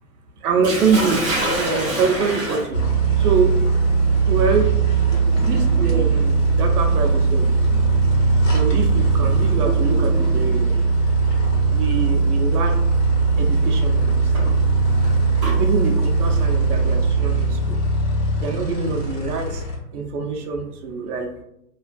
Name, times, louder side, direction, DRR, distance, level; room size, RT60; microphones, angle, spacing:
voice 1, 0.4-1.2 1.6-2.8 3.2-3.6 4.2-5.0 5.4-7.8 8.5-10.8 11.7-12.7 13.4-14.1 14.4-14.6 15.6-17.8 18.4-19.6 19.9-21.3, right 5 dB, 70° right, 3 dB, 0.6 m, -24 dB
Sink (filling or washing), 0.6-10.6 11.7-12.0 12.5-12.6 14.1-15.6, right 1 dB, 20° right, 0.7 m, -30 dB
sound 1, 2.7-19.8, right 4 dB, 75° left, 1.1 m, -19 dB
2.5 x 2.3 x 2.2 m, 0.80 s
hypercardioid pair, 165°, 48 cm